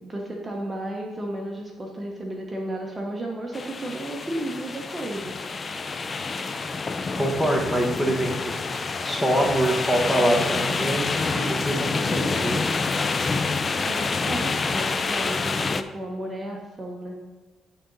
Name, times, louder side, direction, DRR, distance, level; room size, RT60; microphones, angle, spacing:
voice 1, 0.0-5.4 13.8-17.2, right 1 dB, 20° right, -1 dB, 1.1 m, -33 dB
sound 1, 3.5-15.8, left 4 dB, 35° left, 0.5 m, -27 dB
voice 2, 7.2-8.3 9.0-12.6, right 1 dB, 10° left, 0 dB, 1.6 m, -24 dB
11.5 x 3.9 x 4.1 m, 1.3 s
cardioid pair, 90°, 0 cm